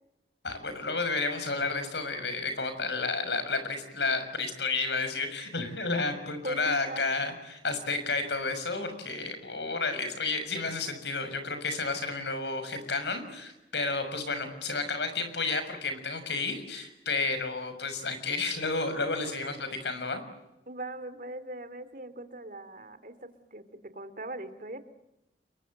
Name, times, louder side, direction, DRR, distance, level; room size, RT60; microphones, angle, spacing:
voice 1, 0.4-20.2, left 3 dB, 80° left, 9 dB, 6.3 m, -31 dB
voice 2, 6.4-7.0 20.7-24.8, right 1 dB, 50° right, 12 dB, 2.5 m, -40 dB
30.0 x 23.0 x 7.9 m, 0.89 s
head